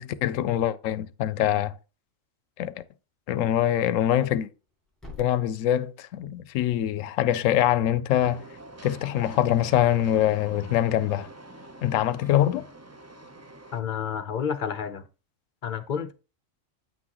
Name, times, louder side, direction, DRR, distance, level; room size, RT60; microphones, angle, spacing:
voice 1, 0.0-1.7 2.6-2.8 3.3-4.5 5.2-8.4 8.8-11.3 11.8-12.7, left 11 dB, 85° left, 0.9 m, -24 dB
Thump thud, 4.1-8.2, left 2 dB, ahead, 2.6 m, -52 dB
Train, 8.1-13.8, right 2 dB, 20° right, 0.5 m, -45 dB
voice 2, 13.7-15.0 15.6-16.1, left 7 dB, 45° left, 0.7 m, -30 dB
8.9 x 6.2 x 3.0 m
omnidirectional pair, 1.3 m